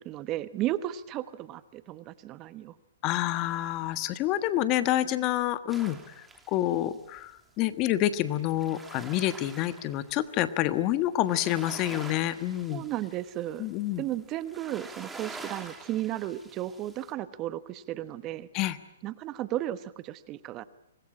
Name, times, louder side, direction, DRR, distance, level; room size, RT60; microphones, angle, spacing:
voice 1, 0.0-2.8 12.7-13.7 14.0-18.5 19.0-20.6, right 13 dB, 30° right, 14 dB, 1.1 m, -34 dB
voice 2, 3.0-6.0 6.5-7.3 7.6-12.8 13.6-14.0 18.5-18.8, left 13 dB, 35° left, 12 dB, 1.4 m, -28 dB
sound 1, 5.7-7.2 8.1-10.3 10.6-10.7 11.2-17.1, right 3 dB, 5° right, 2.9 m, -47 dB
25.5 x 20.0 x 8.7 m, 0.81 s
hypercardioid pair, 135°, 0 cm